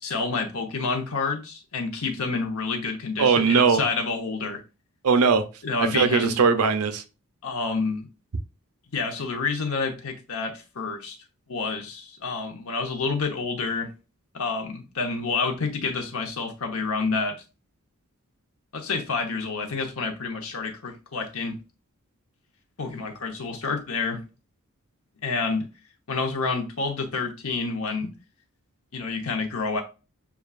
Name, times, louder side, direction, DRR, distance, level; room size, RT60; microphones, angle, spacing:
voice 1, 0.0-4.6 5.6-6.3 7.4-8.1 8.9-11.2 11.5-13.9 14.3-17.4 18.7-21.6 22.8-24.2 25.2-25.6 26.1-28.1 28.9-29.8, left 4 dB, 75° left, 0.9 m, -28 dB
voice 2, 3.2-3.8 5.0-5.5 5.8-7.0, right 5 dB, 85° right, 0.6 m, -20 dB
6.9 x 2.4 x 2.4 m
head